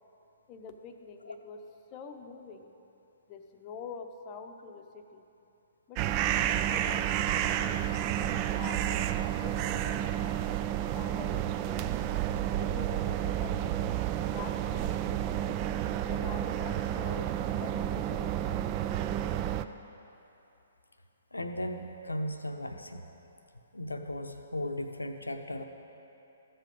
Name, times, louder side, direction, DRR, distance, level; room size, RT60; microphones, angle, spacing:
voice 1, 0.5-1.6 1.9-2.7 3.3-5.2 5.9-8.8 9.4-11.9 12.6-15.5 16.1-18.7, left 5 dB, 30° left, 6 dB, 0.7 m, -46 dB
sound 1, 6.0-19.6, right 11 dB, 30° right, 0.3 m, -30 dB
voice 2, 21.3-23.0 23.7-25.6, left 1 dB, 80° left, 6 dB, 0.7 m, -36 dB
13.5 x 7.4 x 5.1 m, 2.9 s
figure-of-eight pair, 125°, 0 cm